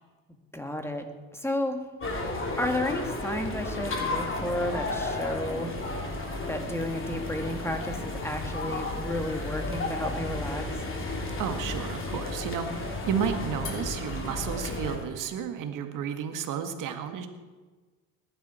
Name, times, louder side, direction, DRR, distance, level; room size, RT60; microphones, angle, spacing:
voice 1, 0.5-1.0 1.3-1.8 2.6-5.8 6.5-10.6, left 1 dB, 5° left, 5 dB, 2.2 m, -32 dB
sound 1, 2.0-15.0, left 2 dB, 35° left, 3.3 m, -33 dB
voice 2, 11.4-17.3, right 7 dB, 60° right, 6 dB, 1.9 m, -32 dB
20.5 x 11.5 x 4.5 m, 1.3 s
supercardioid pair, 85°, 36 cm